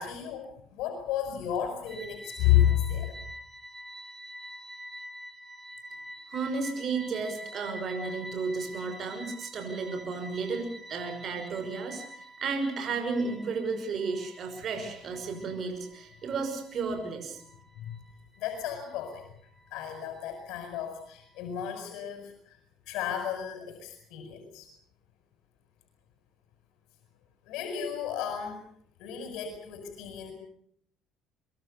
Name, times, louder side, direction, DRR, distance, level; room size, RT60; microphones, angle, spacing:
voice 1, 0.0-3.1 17.8-17.9 18.4-19.2 19.7-22.6 22.9-24.7 27.4-28.6 29.0-30.3, left 11 dB, 75° left, 4 dB, 6.5 m, -31 dB
sound 1, 1.9-21.7, equal, 10° right, 6.4 m, -47 dB
voice 2, 6.3-17.4, right 4 dB, 45° right, 6 dB, 5.7 m, -33 dB
25.0 x 22.5 x 6.9 m, 0.66 s
cardioid pair, 110°, 0 cm